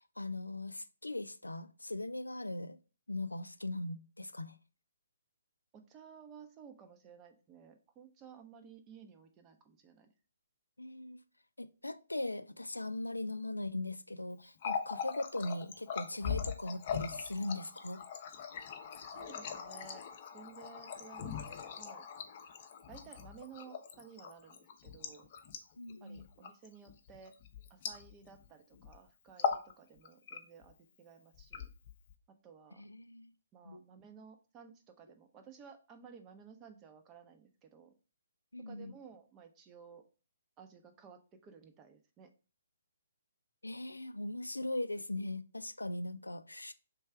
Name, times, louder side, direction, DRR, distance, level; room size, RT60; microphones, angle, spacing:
voice 1, 0.0-2.8 3.1-4.6 10.8-11.2 11.6-18.0 25.8-26.3 32.8-33.3 33.7-33.8 38.5-38.9 43.6-46.7, left 2 dB, 90° left, 0.3 m, -39 dB
voice 2, 5.7-10.1 19.0-20.0 20.3-22.1 22.9-25.3 26.0-27.4 27.7-31.7 32.4-32.8 33.5-38.0 38.6-40.0 40.6-42.3, right 6 dB, 20° right, 0.7 m, -55 dB
Water tap faucet, 14.4-28.5 28.7-29.0 29.3-29.7 30.0-30.7 31.3-32.1, left 7 dB, 40° left, 0.6 m, -40 dB
3.3 x 3.2 x 4.5 m
figure-of-eight pair, 135°, 0 cm